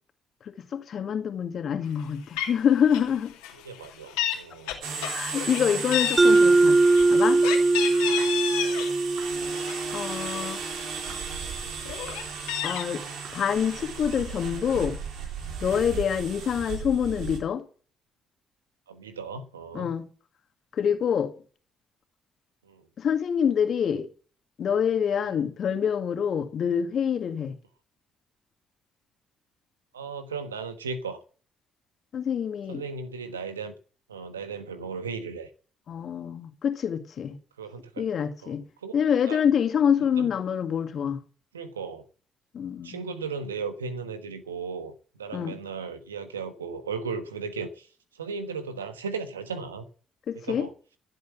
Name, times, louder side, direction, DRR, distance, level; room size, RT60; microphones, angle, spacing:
voice 1, 0.7-3.3 5.0-6.8 7.1-7.4 9.9-10.6 12.6-13.0 13.3-15.0 15.6-17.6 19.7-20.1 20.7-21.3 23.0-24.1 24.6-27.5 32.1-32.8 35.9-37.4 38.0-38.6 38.9-41.2 42.5-43.1 45.3-45.6 50.3-50.7, left 8 dB, 55° left, 2.1 m, -26 dB
Meow, 2.0-2.1 2.4-2.6 2.9-3.2 3.4-4.4 4.7-5.6 5.9-8.9 9.3-10.4 10.9-11.0 11.3-12.8, left 11 dB, 75° left, 2.6 m, -31 dB
voice 2, 3.6-4.8 8.6-8.8 18.9-19.9 22.6-22.8 25.2-25.4 29.9-31.2 32.7-33.7 34.1-35.5 37.6-38.0 38.4-38.9 39.3-39.4 40.1-40.3 41.5-42.0 42.8-47.9 48.1-49.8 50.3-50.7, right 5 dB, 90° right, 1.2 m, -36 dB
sound 1, 4.8-17.4, right 5 dB, 65° right, 3.1 m, -36 dB
Mallet percussion, 6.2-10.7, right 3 dB, 25° right, 0.5 m, -21 dB
15.0 x 8.0 x 7.2 m
hypercardioid pair, 45°, 0 cm